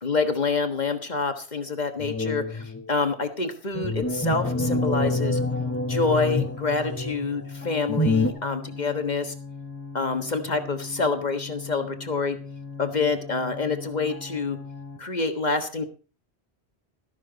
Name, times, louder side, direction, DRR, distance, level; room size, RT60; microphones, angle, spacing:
voice 1, 0.0-5.4 5.9-9.3 9.9-12.4 12.8-14.6 15.0-15.8, left 4 dB, 40° left, 7 dB, 1.6 m, -27 dB
sound 1, 2.0-2.8 3.7-7.4 7.9-8.3, left 2 dB, 15° left, 1.2 m, -26 dB
sound 2, 4.3-15.0, left 4 dB, 10° right, 4.9 m, -40 dB
13.0 x 12.0 x 4.0 m, 0.34 s
omnidirectional pair, 1.1 m